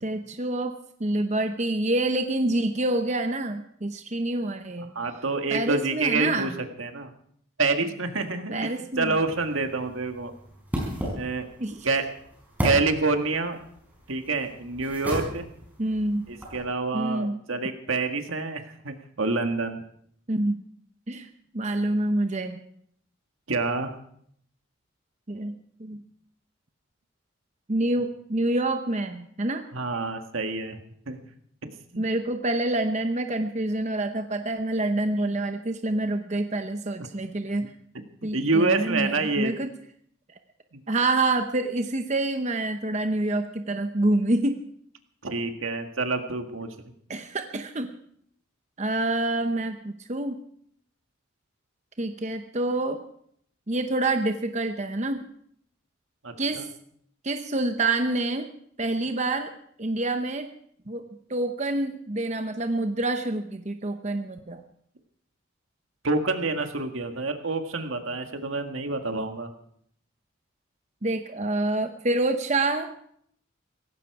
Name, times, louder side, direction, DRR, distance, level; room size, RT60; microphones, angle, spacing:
voice 1, 0.0-0.7 1.0-4.9 5.5-6.5 8.5-9.2 11.6-11.9 15.8-16.3 16.9-17.4 20.3-20.6 21.1-21.3 21.5-22.6 25.3-25.5 25.8-26.0 27.7-29.6 32.0-37.7 38.2-39.7 40.9-44.6 47.1-47.9 48.8-50.3 52.0-53.0 53.7-55.3 56.4-56.7 57.2-58.5 58.8-60.5 60.9-61.0 61.3-64.6 71.0-72.9, right 2 dB, 35° right, 6 dB, 0.8 m, -27 dB
voice 2, 5.0-6.5 6.8-7.1 7.6-10.3 11.2-11.5 11.8-12.1 12.6-13.6 14.1-15.5 16.3-19.8 23.5-23.9 29.7-30.8 31.1-31.3 31.6-32.0 38.3-39.5 40.7-40.8 45.2-46.7 56.2-56.7 66.0-69.5, right 3 dB, 80° right, 6 dB, 1.8 m, -27 dB
sound 1, 8.9-16.6, equal, 10° right, 5.2 m, -35 dB
17.5 x 16.0 x 4.8 m, 0.68 s
head